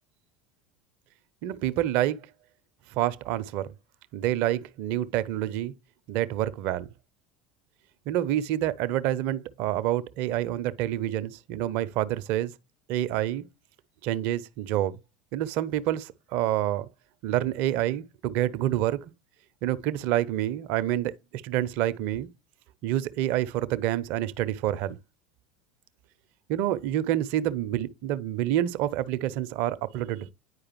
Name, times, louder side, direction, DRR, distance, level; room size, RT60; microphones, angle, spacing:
voice 1, 1.4-2.2 2.9-3.7 4.1-5.7 6.1-6.9 8.1-12.5 12.9-13.5 14.0-15.0 15.3-16.9 17.2-19.1 19.6-21.1 21.4-22.3 22.8-25.0 26.5-30.3, right 13 dB, 55° right, 0.5 m, -27 dB
9.6 x 4.8 x 2.9 m
figure-of-eight pair, 75°, 4 cm